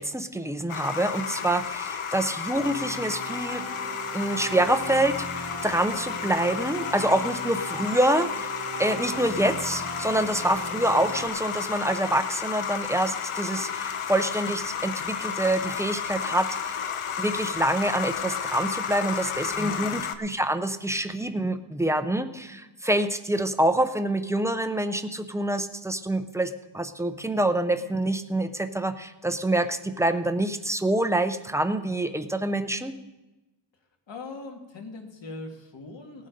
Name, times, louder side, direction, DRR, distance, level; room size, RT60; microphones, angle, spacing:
voice 1, 0.0-3.6 4.1-8.5 8.8-16.8 17.2-32.9, right 1 dB, 5° right, 9 dB, 0.4 m, -26 dB
sound 1, 0.7-20.2, left 7 dB, 80° left, 0.9 m, -32 dB
sound 2, 2.5-11.3, right 4 dB, 50° right, 1.0 m, -39 dB
voice 2, 19.5-19.9 34.1-36.3, left 3 dB, 60° left, 2 dB, 1.9 m, -40 dB
18.5 x 7.6 x 5.2 m, 1.1 s
wide cardioid pair, 180°, 49 cm